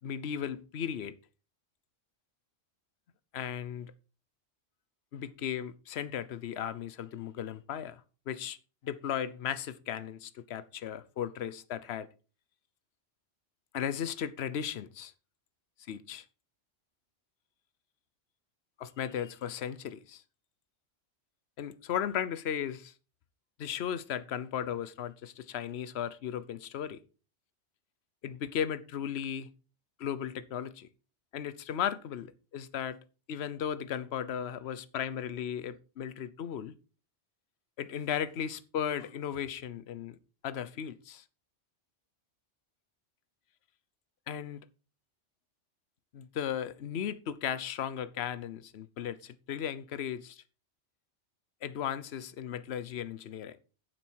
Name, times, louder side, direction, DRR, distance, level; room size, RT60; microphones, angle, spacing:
voice 1, 0.0-1.1 3.3-3.9 5.1-8.6 8.8-12.1 13.7-15.1 15.9-16.2 18.8-20.2 21.6-22.9 23.6-27.0 28.2-29.5 30.0-30.9 31.3-33.0 33.3-36.7 37.8-40.2 40.4-41.2 44.3-44.6 46.1-50.4 51.6-53.6, left 9 dB, 65° left, 1.0 m, -36 dB
9.3 x 7.6 x 4.6 m
omnidirectional pair, 1.2 m